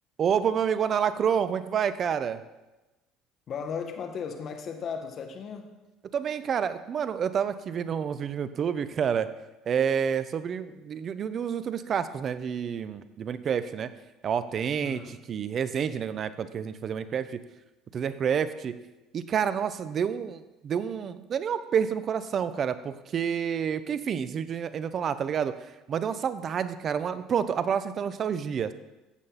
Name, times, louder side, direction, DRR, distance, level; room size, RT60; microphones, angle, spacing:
voice 1, 0.2-2.4 6.1-9.3 9.7-13.9 14.2-17.4 17.9-18.7 19.1-25.5 25.9-28.7, right 7 dB, 45° right, 13 dB, 0.8 m, -28 dB
voice 2, 3.5-5.8 14.8-15.2, left 6 dB, 50° left, 6 dB, 1.7 m, -36 dB
14.5 x 8.8 x 4.3 m, 1.1 s
hypercardioid pair, 75°, 0 cm